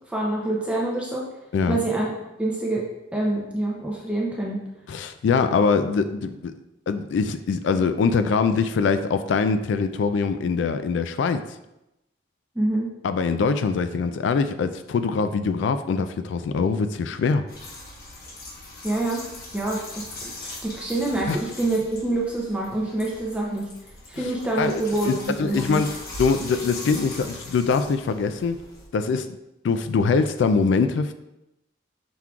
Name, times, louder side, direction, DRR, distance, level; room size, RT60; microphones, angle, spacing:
voice 1, 0.1-1.3 1.7-2.8 3.1-4.6 12.6-12.9 18.8-19.3 19.5-23.7 24.1-25.8, right 2 dB, 5° right, -3 dB, 0.5 m, -26 dB
voice 2, 4.9-6.5 6.9-11.4 13.0-17.4 21.3-21.4 24.2-24.3 24.6-25.9 26.2-28.6 28.9-29.3 29.6-31.1, left 5 dB, 80° left, 10 dB, 0.3 m, -23 dB
sound 1, 17.5-28.9, left 2 dB, 55° left, 1.0 m, -40 dB
5.9 x 3.6 x 2.3 m, 0.89 s
head